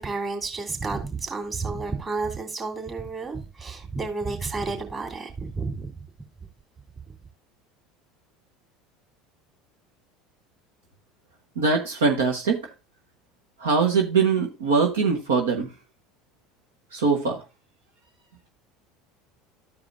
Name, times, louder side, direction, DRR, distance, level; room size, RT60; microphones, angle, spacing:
voice 1, 0.0-6.0, right 3 dB, 30° right, 3.1 m, -31 dB
voice 2, 11.6-12.6 13.6-15.7 16.9-17.4, right 4 dB, 85° right, 1.1 m, -22 dB
14.0 x 4.9 x 2.5 m
hypercardioid pair, 80°, 0 cm